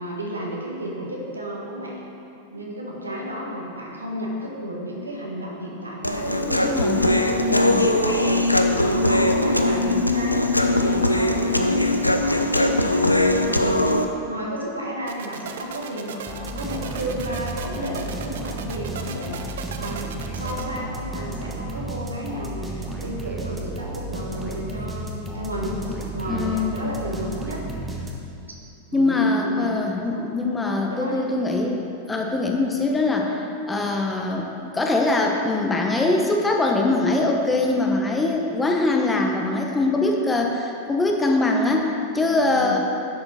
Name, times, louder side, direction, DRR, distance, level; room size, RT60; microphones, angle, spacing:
voice 1, 0.0-2.0 2.5-27.6 28.9-29.7 30.1-30.3 30.8-31.3 42.4-42.7, equal, 80° right, -2 dB, 1.5 m, -32 dB
Human voice, 6.0-14.1, left 1 dB, 85° left, 0.5 m, -20 dB
voice 2, 6.5-7.1 7.5-7.9 26.3-26.8 28.9-42.8, left 2 dB, 10° left, 1 dB, 1.0 m, -23 dB
sound 1, 15.1-20.6, right 7 dB, 60° right, 0.6 m, -37 dB
sound 2, 16.3-28.5, right 2 dB, 15° right, 1.2 m, -33 dB
10.5 x 6.8 x 4.2 m, 2.7 s
figure-of-eight pair, 90°, 0 cm